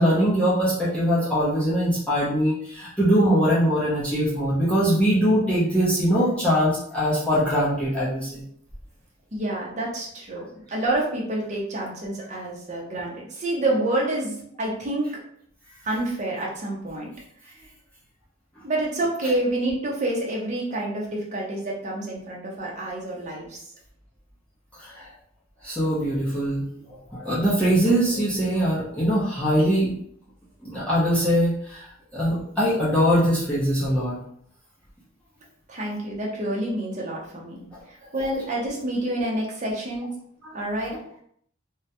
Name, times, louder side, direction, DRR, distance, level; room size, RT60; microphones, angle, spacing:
voice 1, 0.0-8.4 24.8-25.1 25.6-29.9 30.6-31.9 32.1-34.2 40.4-40.9, equal, 5° left, -10 dB, 0.6 m, -22 dB
voice 2, 9.3-15.1 15.8-17.1 18.6-23.6 35.7-37.7 38.1-40.1 40.5-41.0, right 1 dB, 35° right, -3 dB, 0.6 m, -28 dB
2.2 x 2.0 x 2.7 m, 0.66 s
head